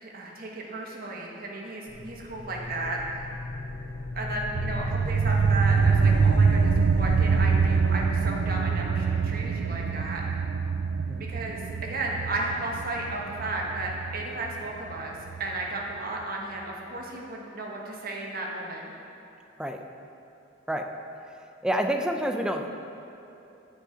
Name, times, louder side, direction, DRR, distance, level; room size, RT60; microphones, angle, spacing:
voice 1, 0.0-3.3 4.1-10.2 11.3-18.9, right 2 dB, 50° right, -1 dB, 1.1 m, -34 dB
sound 1, 1.9-7.7, left 1 dB, 55° left, 0.6 m, -34 dB
sound 2, 4.5-15.6, right 5 dB, 75° right, 0.3 m, -25 dB
voice 2, 21.6-22.7, equal, 5° right, 4 dB, 0.4 m, -27 dB
8.7 x 5.6 x 4.9 m, 2.8 s
head